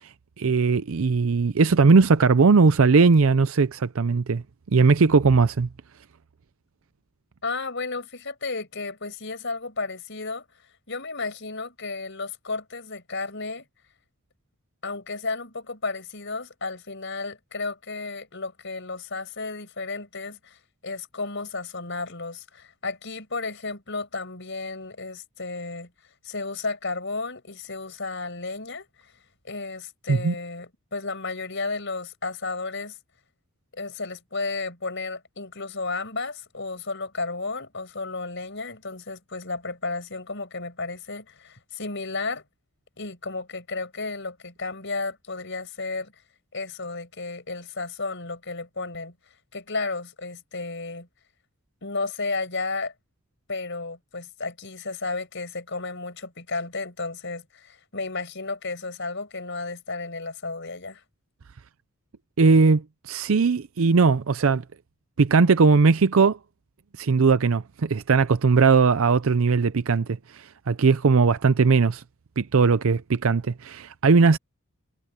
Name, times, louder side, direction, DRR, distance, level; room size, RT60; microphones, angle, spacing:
voice 1, 0.4-4.4 4.7-5.7 30.1-30.3 62.4-64.6 65.2-66.4 67.0-72.0 72.4-74.4, right 4 dB, 65° right, 0.5 m, -19 dB
voice 2, 7.4-10.4 10.9-13.6 14.8-25.9 26.2-29.1 29.4-33.0 33.7-42.4 43.0-46.1 46.5-49.1 49.5-51.1 51.8-52.9 53.5-61.0, left 3 dB, 55° left, 5.6 m, -33 dB
head